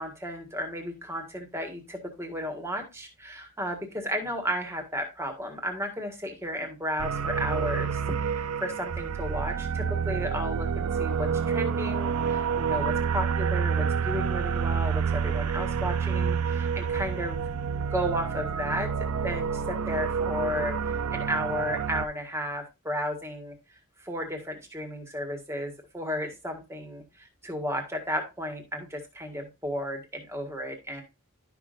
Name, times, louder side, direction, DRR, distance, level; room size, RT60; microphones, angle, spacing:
voice 1, 0.0-17.4 17.9-18.9 19.2-23.5 24.0-31.0, equal, 10° right, 4 dB, 1.6 m, -33 dB
sound 1, 7.0-22.0, right 6 dB, 85° right, 0.5 m, -28 dB
12.0 x 5.9 x 2.5 m, 0.26 s
head